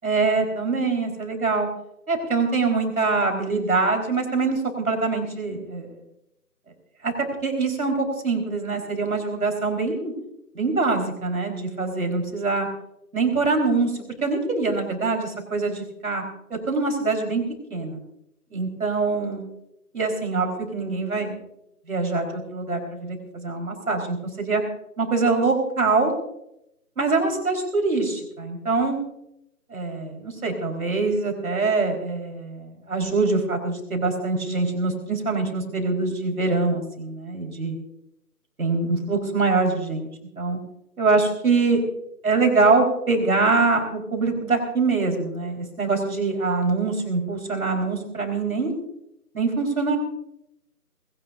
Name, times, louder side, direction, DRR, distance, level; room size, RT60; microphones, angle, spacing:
voice 1, 0.0-1.7 2.1-6.0 7.0-7.1 7.4-10.1 10.5-12.7 13.1-13.9 14.2-16.2 16.5-17.4 17.7-18.0 18.5-19.5 19.9-21.4 21.9-24.6 25.0-26.1 27.0-29.0 29.7-37.8 38.6-40.1 40.4-40.6 41.0-41.8 42.2-48.7 49.3-50.0, right 3 dB, 65° right, 2 dB, 4.3 m, -24 dB
20.5 x 17.5 x 2.6 m, 0.81 s
figure-of-eight pair, 160°, 46 cm